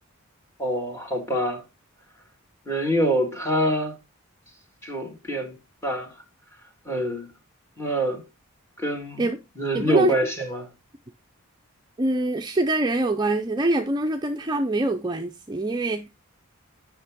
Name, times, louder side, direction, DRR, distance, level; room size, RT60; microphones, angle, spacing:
voice 1, 0.6-1.6 2.7-3.9 4.8-5.5 5.8-6.1 6.9-7.3 7.8-8.2 8.8-9.2 9.6-10.7, equal, 15° left, 2.0 m, -25 dB
voice 2, 9.7-10.1 12.0-16.1, right 2 dB, 20° right, 0.5 m, -24 dB
8.4 x 5.9 x 3.6 m
head